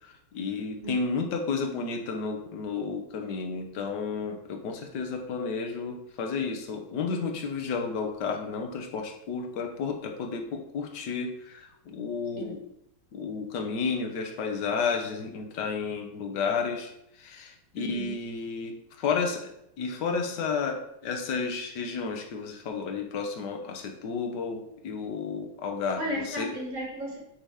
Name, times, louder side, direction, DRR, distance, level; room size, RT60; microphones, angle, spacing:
voice 1, 0.0-12.6 13.1-16.9 17.2-19.5 19.8-26.5, left 5 dB, 60° left, 3 dB, 1.4 m, -32 dB
voice 2, 17.7-18.1 26.0-27.2, equal, 25° right, -2 dB, 1.8 m, -34 dB
8.9 x 3.0 x 4.9 m, 0.78 s
omnidirectional pair, 2.3 m